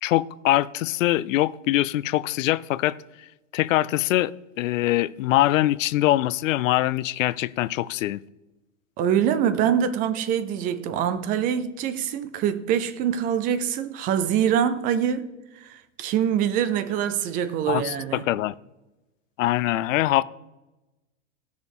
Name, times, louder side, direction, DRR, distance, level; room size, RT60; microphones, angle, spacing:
voice 1, 0.0-3.3 3.5-4.3 4.6-8.2 17.7-18.5 19.4-20.2, left 15 dB, 80° left, 0.5 m, -23 dB
voice 2, 9.0-15.3 15.6-18.2, right 9 dB, 20° right, 0.5 m, -24 dB
17.0 x 6.4 x 3.5 m
supercardioid pair, 150°, 38 cm